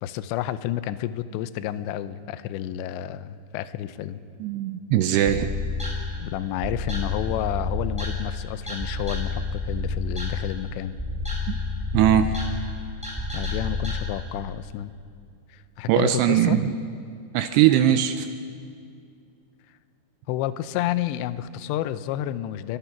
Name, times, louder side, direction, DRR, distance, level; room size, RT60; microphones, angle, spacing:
voice 1, 0.0-4.2 6.2-11.0 13.3-14.9 15.5-16.6 20.3-22.8, left 12 dB, 80° left, 13 dB, 2.8 m, -30 dB
voice 2, 4.4-5.5 11.9-12.4 15.9-16.7 17.3-18.3, right 11 dB, 85° right, 8 dB, 2.4 m, -20 dB
sound 1, 5.3-14.0, left 3 dB, ahead, 4.8 m, -30 dB
27.5 x 23.5 x 5.9 m, 2.3 s
omnidirectional pair, 5.6 m